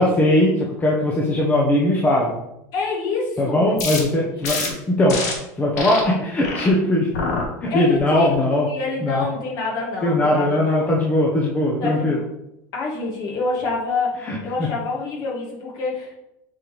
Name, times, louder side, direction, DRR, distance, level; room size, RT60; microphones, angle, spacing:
voice 1, 0.0-2.3 3.4-5.2 5.6-7.1 7.6-8.7 9.0-9.2 10.0-12.2 14.2-14.7, left 1 dB, 15° left, -3 dB, 1.0 m, -19 dB
voice 2, 2.7-3.6 4.3-4.4 7.7-10.9 11.8-12.2 12.7-16.1, left 3 dB, 50° left, -2 dB, 2.1 m, -27 dB
sound 1, 3.8-4.0 4.4-4.7 5.1-5.3 5.8-6.0 6.4-6.7 7.1-7.4 7.9-8.3, left 4 dB, 90° left, 1.6 m, -26 dB
7.6 x 4.0 x 3.3 m, 0.85 s
supercardioid pair, 135°, 9 cm